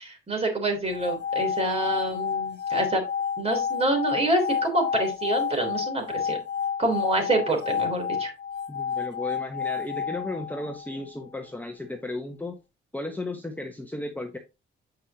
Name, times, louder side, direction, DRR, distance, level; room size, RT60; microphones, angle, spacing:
voice 1, 0.0-3.0 3.4-6.4 6.8-8.3, right 2 dB, 30° right, 3 dB, 3.3 m, -26 dB
sound 1, 0.9-11.0, left 7 dB, 60° left, 0.8 m, -30 dB
voice 2, 8.7-12.6 12.9-14.4, left 2 dB, 10° left, 4 dB, 1.0 m, -34 dB
7.9 x 5.5 x 2.9 m, 0.26 s
cardioid pair, 90°, 20 cm